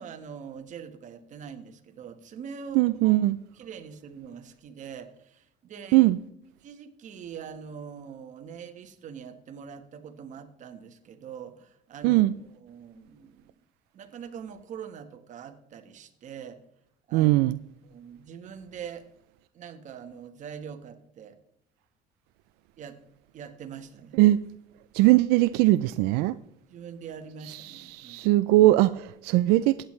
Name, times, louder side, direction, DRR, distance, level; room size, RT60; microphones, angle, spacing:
voice 1, 0.0-3.2 3.5-6.1 6.6-12.2 12.6-13.6 13.9-16.6 17.1-17.3 17.8-19.1 19.5-21.4 22.8-23.0 23.3-24.2 26.7-28.3, right 7 dB, 50° right, 8 dB, 1.3 m, -43 dB
voice 2, 2.7-3.4 5.9-6.2 12.0-12.3 17.1-17.6 24.2-24.4 24.9-26.4 27.5-29.8, right 17 dB, 90° right, 14 dB, 0.4 m, -20 dB
15.0 x 9.0 x 3.2 m, 0.74 s
cardioid pair, 120°, 16 cm